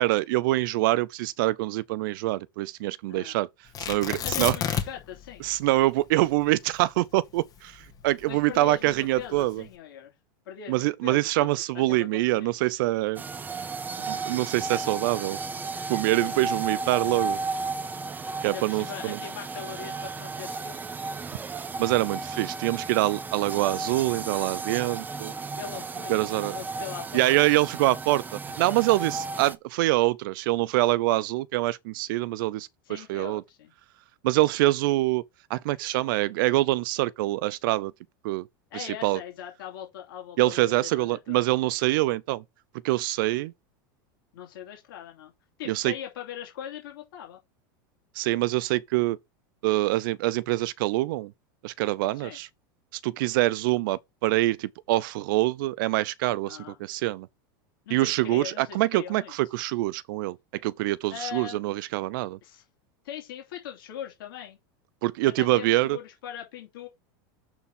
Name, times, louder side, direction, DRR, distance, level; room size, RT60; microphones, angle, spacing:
voice 1, 0.0-3.5 3.9-4.5 5.4-9.6 10.7-13.2 14.1-15.4 15.9-17.4 18.4-19.2 21.8-25.3 26.1-26.6 27.1-33.4 34.2-35.2 35.5-37.9 38.2-38.5 38.7-39.2 40.4-42.4 42.8-43.5 45.7-45.9 48.2-49.2 49.6-51.3 51.6-52.5 53.0-57.3 57.9-60.4 60.6-62.4 65.0-66.0, right 18 dB, 70° right, 0.5 m, -25 dB
Tearing, 3.7-5.1 5.4-5.5 6.1-8.4 9.1-9.6, left 8 dB, 30° left, 1.6 m, -30 dB
voice 2, 4.1-5.5 8.3-10.1 10.4-11.5 11.7-12.6 14.3-14.4 16.2-16.5 18.4-20.8 25.5-27.2 32.8-33.7 38.7-41.4 44.3-45.3 45.6-47.4 52.1-52.4 56.4-56.8 57.8-59.3 61.1-61.6 62.4-62.6 63.0-64.6 65.2-66.9, left 10 dB, 85° left, 3.1 m, -40 dB
sound 1, 13.2-29.6, right 4 dB, 15° right, 0.6 m, -34 dB
6.9 x 4.3 x 5.5 m
supercardioid pair, 125°, 11 cm